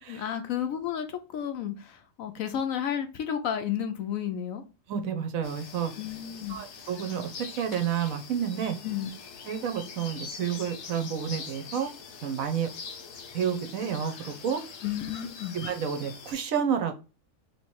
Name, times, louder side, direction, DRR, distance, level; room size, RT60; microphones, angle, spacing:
voice 1, 0.1-4.6 6.0-6.6 8.8-9.1 14.8-15.6, left 9 dB, 70° left, 0.9 m, -32 dB
voice 2, 4.9-5.9 6.5-8.8 9.5-11.9 12.2-12.7 13.3-14.6 15.5-16.9, right 8 dB, 65° right, 1.0 m, -30 dB
sound 1, 5.4-16.3, left 5 dB, 85° left, 1.3 m, -43 dB
3.2 x 2.9 x 4.5 m
omnidirectional pair, 1.6 m